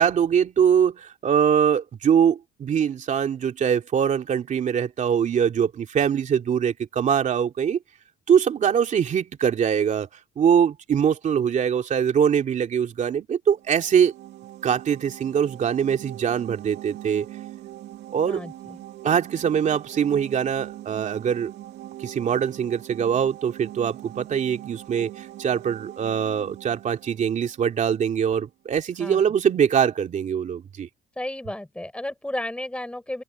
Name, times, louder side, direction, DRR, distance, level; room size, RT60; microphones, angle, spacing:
voice 1, 0.0-7.8 8.3-10.1 10.4-14.1 14.6-17.3 18.1-18.4 19.0-21.5 22.0-30.9, right 8 dB, 45° right, 2.8 m, -23 dB
sound 1, 13.5-28.2, right 14 dB, 80° right, 2.8 m, -42 dB
voice 2, 18.3-18.8 29.0-29.2 31.2-33.2, left 1 dB, 5° left, 6.6 m, -33 dB
open air
cardioid pair, 110°, 17 cm